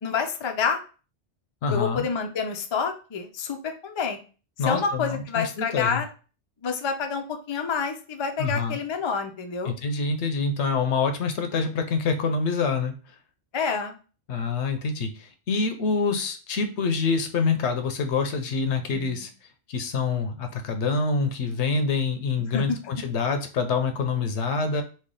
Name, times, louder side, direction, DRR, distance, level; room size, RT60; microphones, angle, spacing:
voice 1, 0.0-0.8 1.7-4.2 4.6-6.1 6.6-9.7 13.5-13.9 18.9-19.3 22.4-22.8, left 5 dB, 45° left, 4 dB, 0.3 m, -28 dB
voice 2, 1.6-2.0 4.6-6.0 8.4-8.8 9.6-12.9 14.3-19.3 19.7-24.8, left 4 dB, 80° left, 6 dB, 0.9 m, -26 dB
3.2 x 2.3 x 3.7 m, 0.36 s
omnidirectional pair, 1.2 m